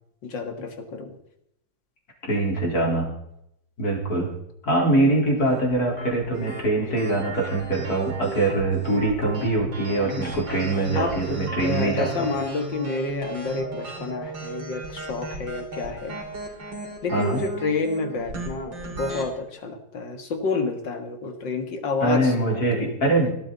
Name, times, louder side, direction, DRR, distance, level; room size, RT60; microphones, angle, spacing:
voice 1, 0.2-1.2 10.9-11.2 11.6-16.2 17.0-23.0, left 3 dB, 75° left, 6 dB, 2.6 m, -29 dB
voice 2, 2.2-3.1 3.8-4.3 4.6-12.3 17.1-17.4 22.0-23.3, right 2 dB, 55° left, -1 dB, 4.7 m, -23 dB
sound 1, 5.5-19.3, right 2 dB, 85° right, 3.9 m, -35 dB
18.0 x 13.0 x 4.1 m, 0.77 s
omnidirectional pair, 2.0 m